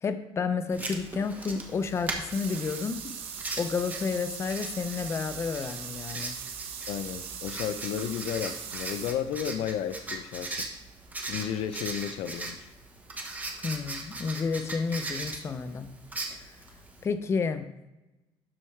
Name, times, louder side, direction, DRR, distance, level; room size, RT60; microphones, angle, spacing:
voice 1, 0.0-3.0 3.6-6.4 13.6-15.9 16.3-16.5 17.0-17.7, left 5 dB, 30° left, 9 dB, 0.5 m, -31 dB
Writing, 0.7-17.0, right 2 dB, 15° right, 1.0 m, -39 dB
sound 1, 2.3-9.1, right 7 dB, 85° right, 1.1 m, -40 dB
voice 2, 6.9-10.7 11.3-12.7, left 9 dB, 80° left, 11 dB, 0.5 m, -33 dB
12.0 x 4.5 x 3.2 m, 0.99 s
cardioid pair, 150°, 10 cm